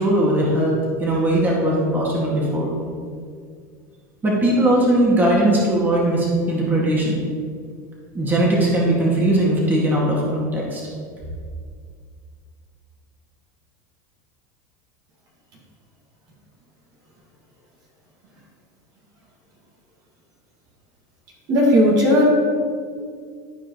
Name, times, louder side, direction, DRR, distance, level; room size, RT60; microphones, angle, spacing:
voice 1, 0.0-2.7 4.2-7.2 8.1-10.8, right 1 dB, 20° right, -4 dB, 2.2 m, -19 dB
voice 2, 21.5-22.3, left 1 dB, 50° right, -3 dB, 2.1 m, -15 dB
12.5 x 5.0 x 3.1 m, 2.1 s
supercardioid pair, 105°, 9 cm